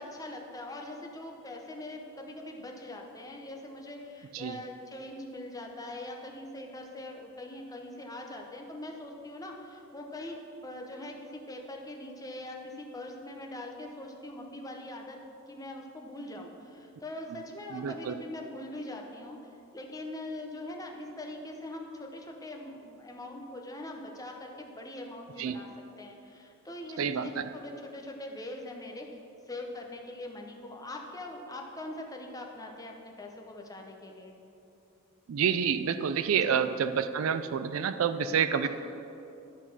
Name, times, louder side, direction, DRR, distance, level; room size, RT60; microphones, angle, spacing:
voice 1, 0.0-15.2 15.5-25.7 26.0-29.1 29.5-34.4 36.4-36.7 38.6-38.7, left 1 dB, 15° left, 1 dB, 0.7 m, -42 dB
voice 2, 17.7-18.2 25.4-25.6 27.0-27.5 35.3-38.7, right 7 dB, 75° right, 11 dB, 0.4 m, -28 dB
11.0 x 4.0 x 6.0 m, 2.8 s
head